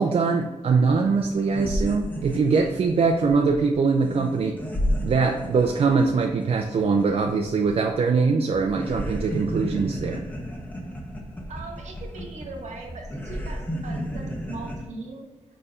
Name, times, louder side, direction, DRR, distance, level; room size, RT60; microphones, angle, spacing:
voice 1, 0.0-4.6 5.0-10.2, right 4 dB, 55° right, 2 dB, 0.5 m, -22 dB
sound 1, 0.9-1.0 1.2-8.2 8.5-14.9, equal, 15° left, 1.0 m, -33 dB
voice 2, 11.5-15.3, right 3 dB, 70° right, 0 dB, 1.5 m, -40 dB
5.1 x 4.5 x 4.3 m, 1.2 s
wide cardioid pair, 110°, 12 cm